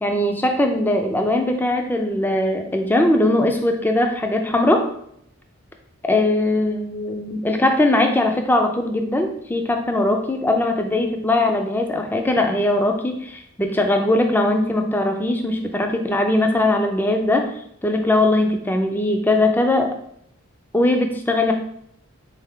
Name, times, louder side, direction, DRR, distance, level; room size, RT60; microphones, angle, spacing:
voice 1, 0.0-4.9 6.1-17.5 17.8-20.0 20.7-21.5, left 1 dB, 10° left, 4 dB, 0.4 m, -20 dB
4.0 x 3.3 x 3.6 m, 0.71 s
head